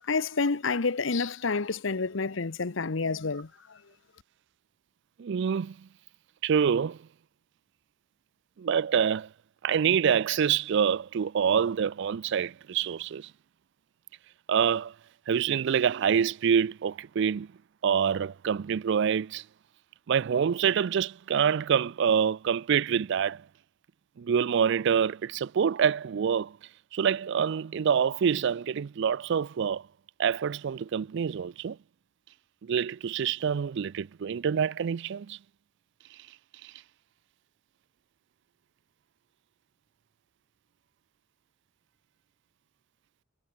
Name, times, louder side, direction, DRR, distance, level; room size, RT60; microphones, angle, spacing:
voice 1, 0.1-3.5, left 4 dB, 70° left, 0.9 m, -28 dB
voice 2, 5.2-5.9 6.4-7.0 8.6-9.3 9.6-13.3 14.5-14.9 15.3-17.5 17.8-19.4 20.1-23.4 24.2-26.6 26.9-29.8 30.2-31.8 32.6-35.4, right 7 dB, 65° right, 0.4 m, -26 dB
head